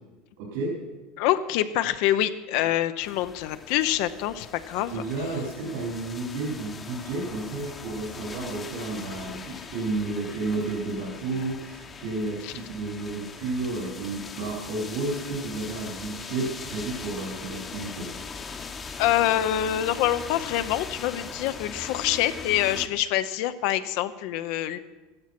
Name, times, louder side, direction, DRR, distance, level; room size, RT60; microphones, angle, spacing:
voice 1, 0.4-0.8 4.9-18.1, right 3 dB, 70° right, -5 dB, 4.9 m, -31 dB
voice 2, 1.2-5.0 12.4-12.5 19.0-24.8, left 12 dB, 60° left, 11 dB, 0.6 m, -26 dB
sound 1, 3.0-22.9, left 5 dB, 20° left, 0.9 m, -40 dB
14.0 x 12.0 x 5.9 m, 1.2 s
supercardioid pair, 145°, 0 cm